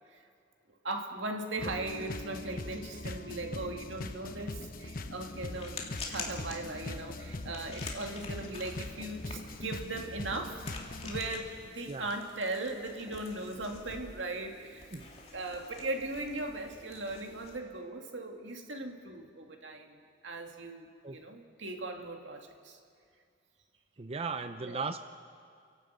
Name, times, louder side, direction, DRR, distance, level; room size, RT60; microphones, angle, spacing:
voice 1, 0.8-5.8 6.1-10.7 11.0-14.9 15.3-20.0 20.2-22.8 24.6-24.8, right 2 dB, 85° right, 3 dB, 2.1 m, -38 dB
sound 1, 1.6-11.3, left 2 dB, 50° left, 1.0 m, -41 dB
sound 2, 5.0-17.6, left 3 dB, 35° left, 2.5 m, -48 dB
voice 2, 24.0-25.0, right 4 dB, 30° right, 9 dB, 0.5 m, -36 dB
29.0 x 11.5 x 8.1 m, 2.3 s
head